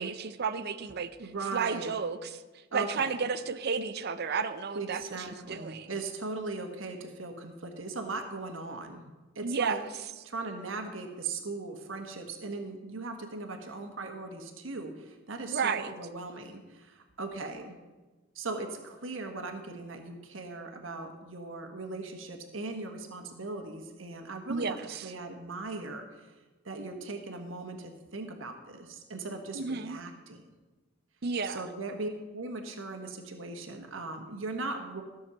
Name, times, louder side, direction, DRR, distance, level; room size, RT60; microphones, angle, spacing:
voice 1, 0.0-1.1 1.5-2.4 2.7-5.9 9.4-9.8 15.5-15.9 24.5-25.1 29.5-30.0 31.2-31.6, right 5 dB, 55° right, 10 dB, 0.6 m, -32 dB
voice 2, 1.2-1.9 2.7-3.1 4.7-9.0 9.3-9.8 10.2-17.8 18.3-26.3 26.6-30.4 31.4-35.0, right 3 dB, 85° right, 4 dB, 1.4 m, -39 dB
14.0 x 6.4 x 7.3 m, 1.2 s
head